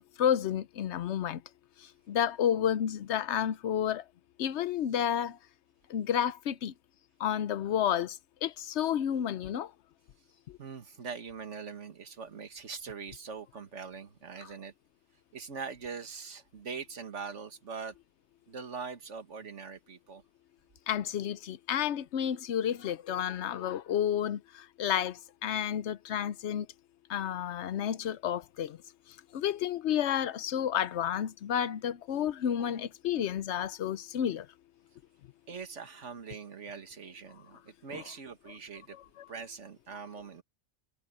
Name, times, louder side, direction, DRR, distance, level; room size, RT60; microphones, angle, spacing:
voice 1, 0.2-1.4 2.1-4.0 4.4-5.4 5.9-6.7 7.2-9.7 10.5-10.6 20.9-26.7 27.1-28.8 29.3-34.5 37.9-38.0 38.9-39.3, left 9 dB, 60° left, 0.9 m, -31 dB
voice 2, 10.6-14.7 15.3-17.9 18.5-20.2 35.5-39.0 39.3-40.4, right 5 dB, 60° right, 1.9 m, -42 dB
omnidirectional pair, 1.4 m